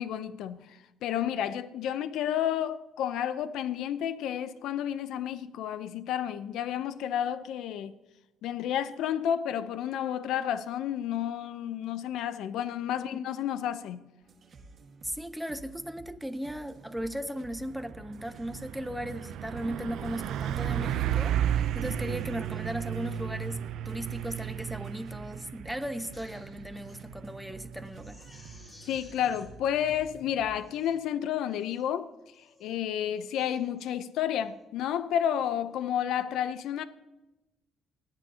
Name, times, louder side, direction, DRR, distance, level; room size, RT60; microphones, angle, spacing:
voice 1, 0.0-7.9 8.4-14.1 28.9-32.1 32.4-36.8, left 10 dB, 80° left, 0.6 m, -31 dB
sound 1, 14.2-30.6, right 3 dB, 50° right, 1.7 m, -52 dB
voice 2, 15.0-28.2, equal, 5° right, 1.0 m, -37 dB
Truck, 17.2-17.3 17.6-30.2, right 10 dB, 75° right, 0.5 m, -34 dB
Crying sobbing, 25.9-27.0 27.4-27.5 27.9-29.5 30.1-30.2 30.6-31.0 31.5-31.9 32.3-32.7 33.1-33.9 34.3-34.6, left 2 dB, 30° left, 5.4 m, -57 dB
29.0 x 9.8 x 2.8 m
cardioid pair, 100°, 0 cm